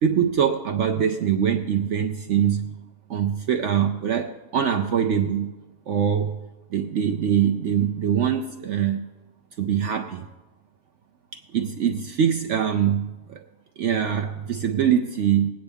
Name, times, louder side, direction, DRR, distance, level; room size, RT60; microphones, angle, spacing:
voice 1, 0.0-2.7 3.1-5.5 5.9-6.4 6.7-9.1 9.6-10.3 11.3-13.4 13.8-15.5, right 8 dB, 65° right, 5 dB, 0.8 m, -23 dB
19.5 x 9.0 x 3.5 m, 1.1 s
omnidirectional pair, 1.6 m